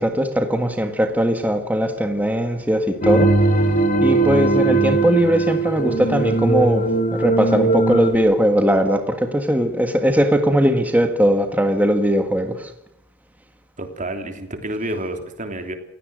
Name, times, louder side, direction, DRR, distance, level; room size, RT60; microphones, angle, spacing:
voice 1, 0.0-3.4 4.0-12.7, equal, 5° right, 6 dB, 1.7 m, -19 dB
sound 1, 3.0-8.1, right 2 dB, 35° left, 2.7 m, -19 dB
voice 2, 13.8-15.8, right 1 dB, 35° right, 6 dB, 3.3 m, -29 dB
28.0 x 17.0 x 6.5 m, 0.73 s
head